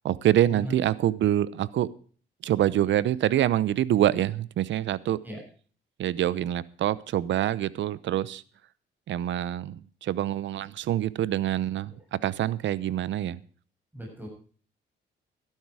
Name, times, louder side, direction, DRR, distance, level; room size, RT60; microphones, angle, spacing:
voice 1, 0.0-1.9 2.4-5.2 6.0-8.4 9.1-13.4, right 12 dB, 70° right, 20 dB, 0.8 m, -26 dB
voice 2, 13.9-14.3, right 1 dB, 10° right, 0 dB, 7.3 m, -37 dB
13.0 x 12.0 x 4.8 m, 0.43 s
cardioid pair, 90°, 20 cm